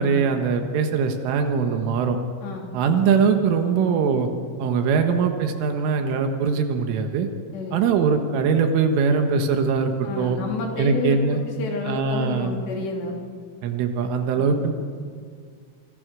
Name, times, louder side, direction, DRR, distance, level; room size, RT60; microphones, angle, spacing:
voice 1, 0.0-2.2 2.7-4.3 4.6-7.3 7.7-10.4 10.8-11.4 11.9-12.5 13.6-14.7, right 5 dB, 85° right, 5 dB, 4.1 m, -22 dB
voice 2, 7.5-7.9 10.0-13.2 14.4-14.5, left 3 dB, 65° left, 1 dB, 5.3 m, -30 dB
29.0 x 28.0 x 6.3 m, 2.1 s
omnidirectional pair, 5.6 m